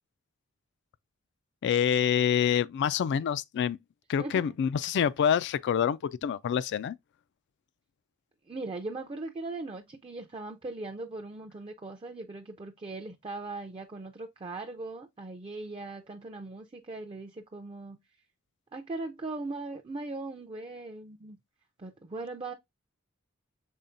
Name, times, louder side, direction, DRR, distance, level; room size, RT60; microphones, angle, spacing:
voice 1, 1.6-3.8 4.1-7.0, left 8 dB, 55° left, 0.3 m, -26 dB
voice 2, 4.2-4.5 8.4-18.0 18.7-21.4 21.8-22.5, right 2 dB, 25° right, 0.5 m, -39 dB
5.5 x 3.8 x 2.5 m
head